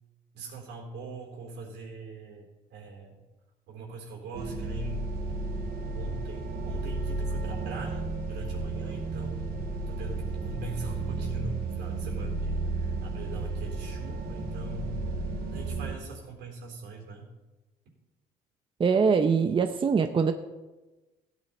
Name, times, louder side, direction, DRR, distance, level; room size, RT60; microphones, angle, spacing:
voice 1, 0.3-3.2 3.7-5.1 5.9-9.6 9.9-15.0 15.5-17.2, right 3 dB, 85° right, 0 dB, 3.9 m, -42 dB
sound 1, 4.3-16.0, right 3 dB, 65° right, 2.9 m, -33 dB
voice 2, 18.8-20.3, right 5 dB, 30° right, 7 dB, 0.8 m, -23 dB
15.5 x 9.0 x 4.4 m, 1.1 s
cardioid pair, 110°, 17 cm